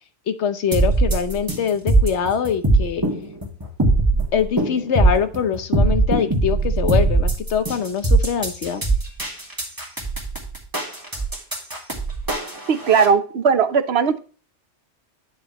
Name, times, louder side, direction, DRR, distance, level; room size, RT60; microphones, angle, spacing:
voice 1, 0.3-3.0 4.3-8.8, left 7 dB, 75° left, 10 dB, 1.1 m, -23 dB
sound 1, 0.7-13.1, right 2 dB, 15° right, 2.2 m, -20 dB
voice 2, 12.7-14.2, right 6 dB, 65° right, 11 dB, 1.0 m, -18 dB
10.0 x 6.6 x 3.0 m, 0.39 s
omnidirectional pair, 1.2 m